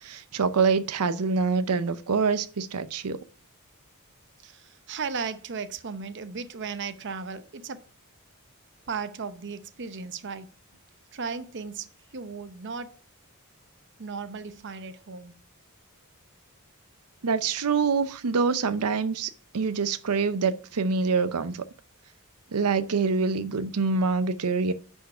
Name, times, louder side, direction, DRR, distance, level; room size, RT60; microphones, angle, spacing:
voice 1, 0.0-3.2 17.2-21.6 22.5-24.7, right 4 dB, 90° right, 0.6 m, -25 dB
voice 2, 4.4-7.8 8.9-10.5 11.1-13.0 14.0-15.3, right 5 dB, 55° right, 0.7 m, -36 dB
10.5 x 4.5 x 5.6 m
head